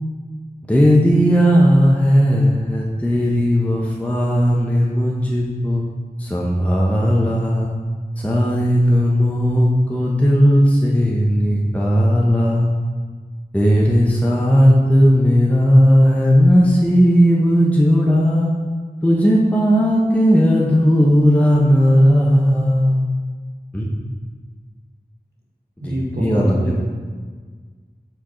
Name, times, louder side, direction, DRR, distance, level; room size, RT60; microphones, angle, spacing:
voice 1, 0.6-5.8 6.2-7.7 8.2-12.7 13.5-18.5 19.0-23.0 23.7-24.0 25.8-26.7, equal, 10° left, -4 dB, 0.8 m, -16 dB
voice 2, 25.8-26.8, equal, 80° right, -3 dB, 1.3 m, -25 dB
4.6 x 4.6 x 5.6 m, 1.5 s
wide cardioid pair, 45°, 17 cm